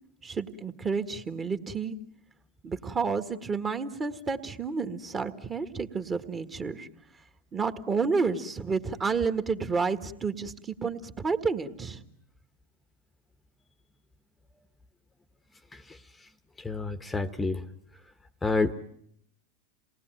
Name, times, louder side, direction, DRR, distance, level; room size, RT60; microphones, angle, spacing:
voice 1, 0.2-2.0 2.6-6.9 7.5-12.0, right 5 dB, 25° right, 9 dB, 1.7 m, -30 dB
voice 2, 16.6-17.6 18.4-18.7, left 3 dB, 15° left, 11 dB, 1.0 m, -29 dB
28.0 x 19.5 x 9.1 m, 0.73 s
hypercardioid pair, 100°, 0 cm